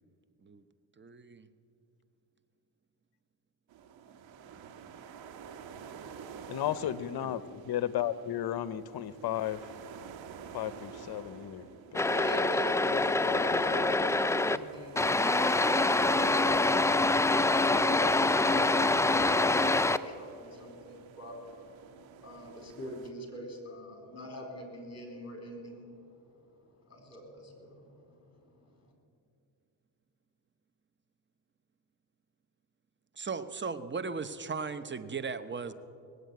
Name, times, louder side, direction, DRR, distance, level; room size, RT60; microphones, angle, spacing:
voice 1, 1.0-1.5 4.4-4.7 6.8-6.9 7.2-7.5 33.2-35.7, right 5 dB, 25° right, 12 dB, 0.9 m, -38 dB
sound 1, 3.7-23.1, right 7 dB, 85° right, 1.4 m, -50 dB
voice 2, 6.5-9.6 10.5-12.1 12.9-13.8, left 11 dB, 55° left, 16 dB, 0.8 m, -34 dB
sound 2, 11.9-14.6 15.0-20.0, left 2 dB, 5° left, 0.3 m, -25 dB
voice 3, 12.0-12.9 13.2-21.4 21.9-28.9, equal, 35° left, 3 dB, 4.3 m, -44 dB
19.0 x 8.1 x 9.3 m, 2.6 s
cardioid pair, 80°, 45 cm